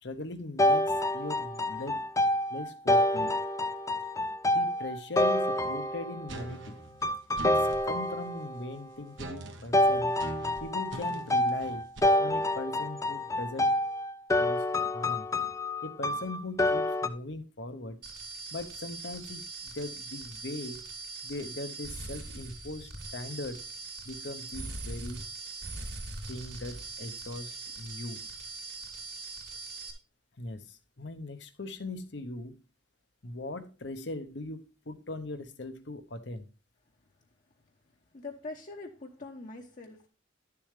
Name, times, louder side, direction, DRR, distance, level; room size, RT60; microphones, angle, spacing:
voice 1, 0.0-2.0 2.5-3.4 4.5-6.8 7.4-10.1 10.6-11.9 12.2-13.8 14.4-15.3 15.8-18.0 18.5-20.8 21.2-23.6 24.0-25.2 26.3-28.3 30.4-32.6 33.2-36.5, left 2 dB, 65° left, 0.9 m, -40 dB
sound 1, 0.6-6.4 7.0-8.7 9.7-17.1, left 1 dB, 15° left, 0.4 m, -27 dB
sound 2, 6.3-7.9 9.2-12.0, right 2 dB, 80° right, 1.3 m, -42 dB
sound 3, 18.0-29.9, right 3 dB, 60° right, 2.8 m, -41 dB
voice 2, 38.1-40.1, left 3 dB, 45° left, 0.9 m, -43 dB
11.5 x 6.9 x 3.3 m
head